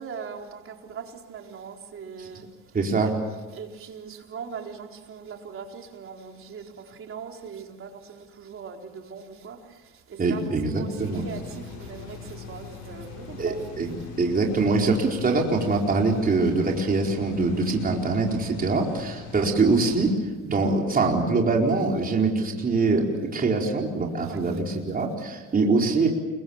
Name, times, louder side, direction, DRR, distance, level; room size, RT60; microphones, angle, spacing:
voice 1, 0.0-2.5 3.5-9.8 10.1-13.6 15.6-15.8 24.2-24.6, right 6 dB, 45° right, 4.2 m, -40 dB
voice 2, 2.7-3.2 10.2-11.2 13.4-20.1 20.4-23.1 23.3-26.1, right 3 dB, 30° right, 4.5 m, -23 dB
sound 1, 11.0-20.1, left 5 dB, 85° left, 7.5 m, -41 dB
29.5 x 23.0 x 7.3 m
cardioid pair, 100°, 29 cm